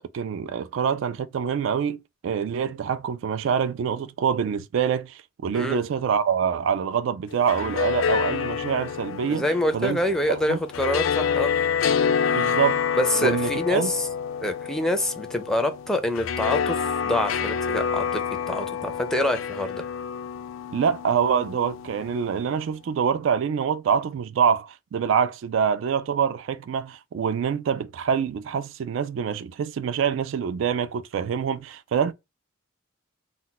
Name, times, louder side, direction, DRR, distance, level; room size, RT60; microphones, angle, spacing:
voice 1, 0.1-2.0 2.2-9.5 9.7-10.0 10.3-10.6 12.1-12.8 13.2-13.9 20.7-32.1, right 7 dB, 70° right, 0.3 m, -25 dB
sound 1, 7.3-22.5, left 7 dB, 75° left, 0.3 m, -28 dB
voice 2, 9.3-11.5 13.0-14.1 14.4-18.2 18.5-19.8, left 1 dB, 5° left, 0.4 m, -26 dB
2.2 x 2.2 x 3.9 m
head